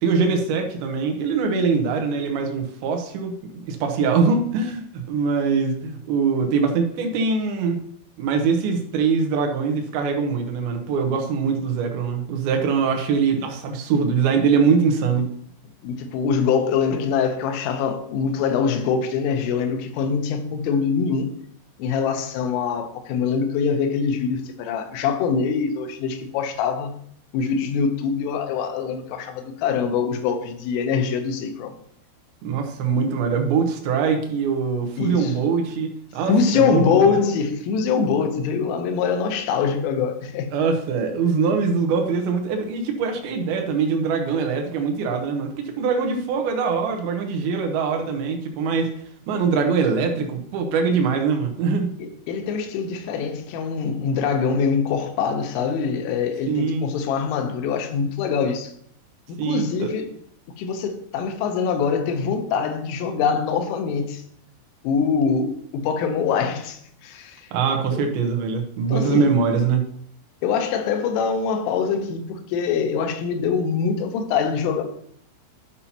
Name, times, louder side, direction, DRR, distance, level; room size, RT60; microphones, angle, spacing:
voice 1, 0.0-7.8 8.2-15.3 32.4-37.0 40.5-48.9 49.3-51.9 56.5-56.9 59.4-59.9 67.5-69.8, right 5 dB, 80° right, 2.2 m, -22 dB
voice 2, 15.8-21.3 21.8-26.9 27.3-31.7 35.0-35.3 36.3-40.5 52.0-58.7 59.4-60.1 60.6-64.2 64.8-67.4 67.9-68.1 68.9-69.4 70.4-74.8, left 6 dB, 85° left, 3.4 m, -24 dB
12.5 x 5.6 x 2.9 m
omnidirectional pair, 5.7 m